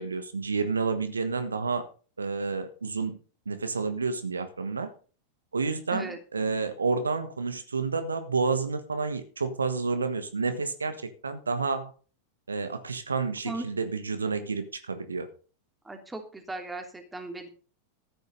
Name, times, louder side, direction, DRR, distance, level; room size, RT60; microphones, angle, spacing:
voice 1, 0.0-1.9 2.2-3.2 3.5-4.9 5.5-11.9 12.5-15.3, right 4 dB, 75° right, 10 dB, 1.3 m, -30 dB
voice 2, 15.8-17.5, right 2 dB, 10° right, 4 dB, 2.9 m, -37 dB
14.0 x 9.7 x 4.0 m, 0.38 s
figure-of-eight pair, 90°, 0 cm